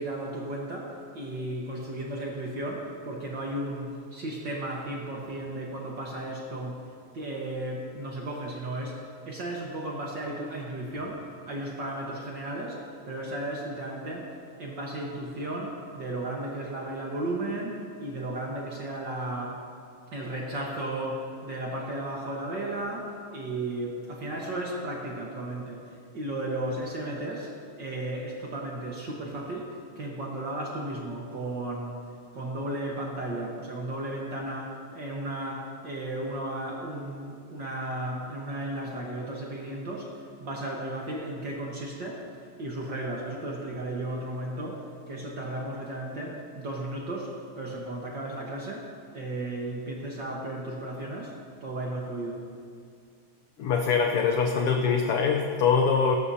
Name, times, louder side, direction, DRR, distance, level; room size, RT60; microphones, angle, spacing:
voice 1, 0.0-14.3 14.6-19.6 20.1-52.4, right 1 dB, 50° right, -3 dB, 1.5 m, -35 dB
voice 2, 53.6-56.2, left 5 dB, 80° left, 3 dB, 1.3 m, -23 dB
19.5 x 11.5 x 2.8 m, 2.2 s
omnidirectional pair, 3.4 m